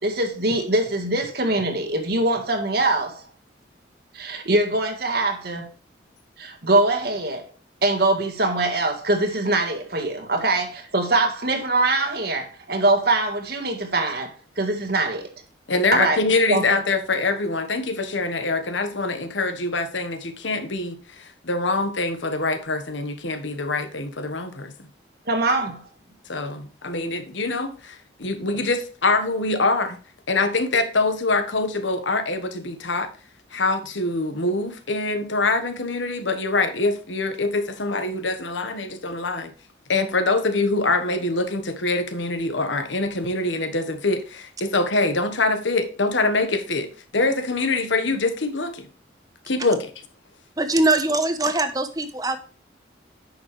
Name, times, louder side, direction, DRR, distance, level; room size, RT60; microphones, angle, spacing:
voice 1, 0.0-3.2 4.1-5.7 6.4-7.5 7.8-15.3 15.9-16.2 16.5-16.7 25.3-25.8, right 2 dB, 55° right, 1.7 m, -23 dB
voice 2, 15.7-24.7 26.3-30.0 30.3-33.1 33.5-39.5 39.9-48.9 49.5-49.9, left 3 dB, 80° left, 1.4 m, -24 dB
voice 3, 50.6-52.4, right 2 dB, 20° right, 1.0 m, -22 dB
9.7 x 6.8 x 3.3 m
head